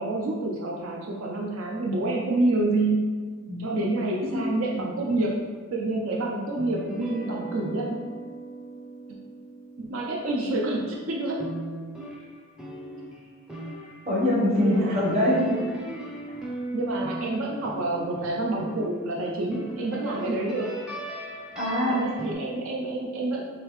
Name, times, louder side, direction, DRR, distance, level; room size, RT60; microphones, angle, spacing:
voice 1, 0.0-3.0 3.6-5.4 5.7-8.1 9.8-11.5 14.6-15.1 16.7-20.7 21.9-23.4, right 2 dB, 75° right, -1 dB, 0.4 m, -28 dB
voice 2, 3.5-3.8 14.1-15.6 21.5-22.1, left 1 dB, 30° right, -5 dB, 0.9 m, -23 dB
sound 1, 6.6-10.9 11.4-19.1 19.5-22.3, right 1 dB, 5° right, 0.5 m, -38 dB
3.5 x 3.4 x 3.1 m, 1.5 s
head